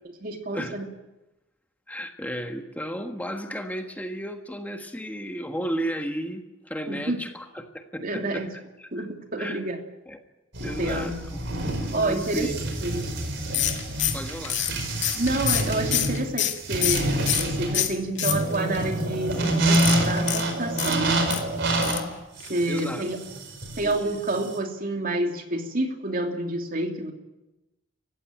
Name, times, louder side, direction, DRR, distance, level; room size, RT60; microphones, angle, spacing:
voice 1, 0.2-0.9 6.9-7.2 8.0-8.5 8.9-9.8 10.6-11.2 11.9-12.6 12.8-13.1 15.2-21.2 22.5-23.2 23.8-27.1, right 2 dB, 45° right, 4 dB, 2.9 m, -29 dB
voice 2, 1.9-8.5 8.8-9.1 9.4-9.6 10.1-10.2 10.6-11.2 11.8-12.5 14.1-14.6 22.7-23.1 23.8-24.2, equal, 10° left, 5 dB, 1.4 m, -33 dB
sound 1, 10.5-24.6, right 1 dB, 65° right, 4.9 m, -27 dB
sound 2, 13.5-17.5 17.7-18.8 19.7-21.4 21.8-22.1 22.4-22.5 22.8-22.9, left 12 dB, 65° left, 2.2 m, -27 dB
27.5 x 15.5 x 9.1 m, 1.0 s
head